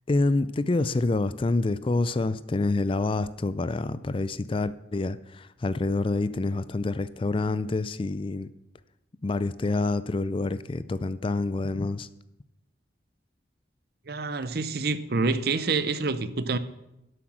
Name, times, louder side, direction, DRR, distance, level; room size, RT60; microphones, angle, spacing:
voice 1, 0.1-8.5 9.2-12.1, left 2 dB, 30° left, 0.4 m, -27 dB
voice 2, 14.1-16.6, right 3 dB, 55° right, 0.7 m, -27 dB
12.0 x 8.0 x 6.2 m
head